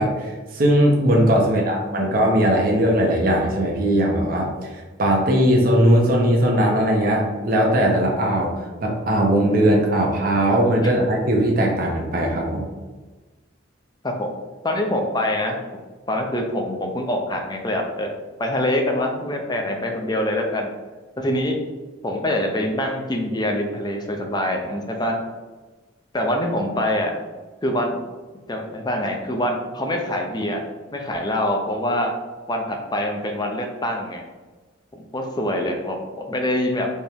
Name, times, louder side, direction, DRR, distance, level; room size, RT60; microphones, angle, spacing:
voice 1, 0.0-12.7, right 1 dB, 50° right, -1 dB, 0.7 m, -19 dB
voice 2, 14.6-15.6 16.1-18.1 18.4-20.7 21.2-21.6 22.0-25.2 26.1-27.1 27.6-28.0 28.5-30.6 30.9-32.1 32.5-34.2 35.1-36.9, left 1 dB, 20° left, 3 dB, 0.6 m, -24 dB
4.3 x 3.5 x 3.5 m, 1.3 s
head